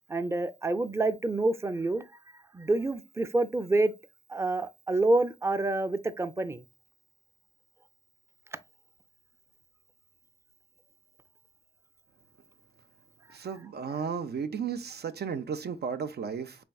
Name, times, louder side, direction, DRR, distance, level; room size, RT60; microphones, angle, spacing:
voice 1, 0.1-2.1 2.5-3.9 4.3-6.6, right 2 dB, 15° right, 0.5 m, -27 dB
voice 2, 13.3-16.6, right 6 dB, 75° right, 0.5 m, -34 dB
4.3 x 3.4 x 2.3 m
cardioid pair, 50°, 17 cm